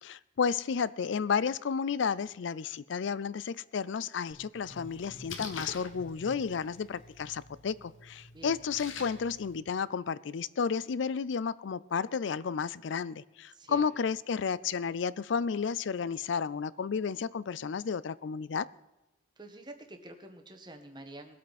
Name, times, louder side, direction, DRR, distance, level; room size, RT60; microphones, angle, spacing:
voice 1, 0.0-18.7, left 6 dB, 70° left, 20 dB, 0.4 m, -32 dB
sound 1, 4.3-7.0, equal, 40° left, 1.9 m, -52 dB
Splash splatter, 4.5-9.6, left 4 dB, 85° left, 1.3 m, -46 dB
voice 2, 13.5-13.8 19.4-21.4, right 1 dB, 20° right, 5 dB, 1.4 m, -47 dB
20.5 x 8.2 x 4.1 m, 1.0 s
head